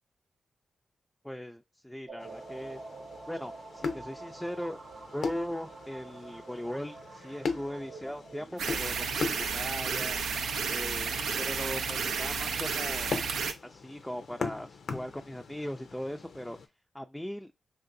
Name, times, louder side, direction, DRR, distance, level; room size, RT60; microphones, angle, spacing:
voice 1, 1.2-2.8 3.3-4.8 5.1-10.3 10.7-13.2 13.6-16.6 16.9-17.5, equal, 5° left, 0.3 m, -39 dB
Pew Pew Factor, 2.1-8.7, right 3 dB, 65° right, 0.7 m, -47 dB
sound 1, 2.2-16.7, left 4 dB, 80° left, 0.5 m, -40 dB
sound 2, 8.6-13.5, right 5 dB, 90° right, 0.4 m, -32 dB
3.6 x 2.5 x 2.5 m
cardioid pair, 50°, 0 cm